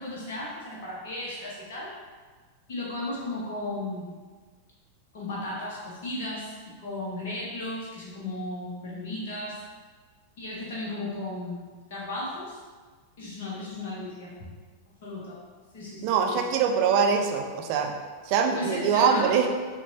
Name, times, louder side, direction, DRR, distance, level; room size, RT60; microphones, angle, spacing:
voice 1, 0.0-1.9 2.7-4.1 5.1-9.6 10.4-12.6 13.2-14.5 15.0-15.4 15.7-16.1 18.5-19.5, left 1 dB, 55° left, -5 dB, 0.8 m, -35 dB
voice 2, 16.0-17.9 18.2-19.5, right 6 dB, 45° right, 3 dB, 0.4 m, -23 dB
5.6 x 2.2 x 2.6 m, 1.4 s
figure-of-eight pair, 90°, 0 cm